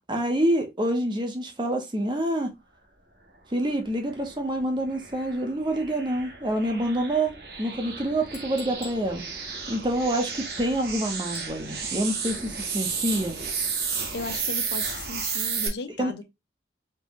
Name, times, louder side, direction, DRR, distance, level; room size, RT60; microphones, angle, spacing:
voice 1, 0.1-2.5 3.5-9.2 9.7-13.4 16.0-16.2, right 1 dB, 25° right, 0.8 m, -27 dB
sound 1, 4.1-15.7, right 5 dB, 60° right, 1.2 m, -33 dB
Chink clink, 8.3-9.1 11.3-11.6, left 4 dB, 15° left, 0.7 m, -46 dB
voice 2, 14.1-16.2, left 3 dB, 70° left, 0.6 m, -36 dB
4.5 x 3.1 x 2.9 m
head